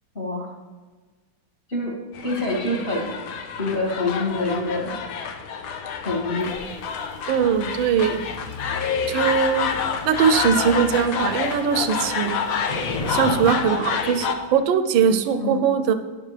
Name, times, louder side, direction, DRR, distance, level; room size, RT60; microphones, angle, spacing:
voice 1, 0.1-0.5 1.7-1.9 2.2-3.2 3.6-5.1 6.0-6.5 15.3-15.6, left 2 dB, 25° left, -3 dB, 2.1 m, -26 dB
sound 1, 2.1-14.3, left 6 dB, 90° left, 1.7 m, -28 dB
Thunder / Rain, 6.4-13.5, left 2 dB, 45° left, 0.4 m, -38 dB
voice 2, 7.3-8.2 9.1-9.7 10.0-12.3 13.1-15.9, right 7 dB, 75° right, 10 dB, 1.4 m, -21 dB
12.0 x 10.0 x 3.3 m, 1.4 s
omnidirectional pair, 2.2 m